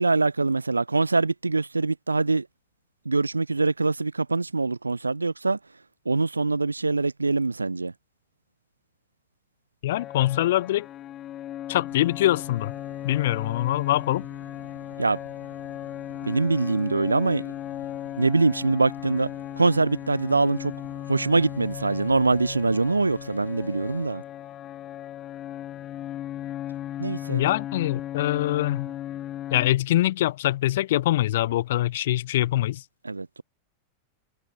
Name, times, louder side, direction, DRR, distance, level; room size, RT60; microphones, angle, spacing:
voice 1, 0.0-2.5 3.1-5.6 6.1-7.9 15.0-15.2 16.2-17.5 18.2-19.3 19.6-20.7 21.1-24.2 27.0-27.5 33.0-33.4, right 3 dB, 80° right, 0.4 m, -23 dB
voice 2, 9.8-10.9 11.7-12.7 13.0-14.3 27.3-28.9 29.5-32.8, left 14 dB, 55° left, 0.4 m, -24 dB
sound 1, 9.9-29.7, left 12 dB, 30° left, 1.9 m, -37 dB
Car passing by / Idling / Accelerating revving vroom, 11.9-24.1, left 1 dB, 90° left, 2.0 m, -47 dB
figure-of-eight pair, 90°, 0 cm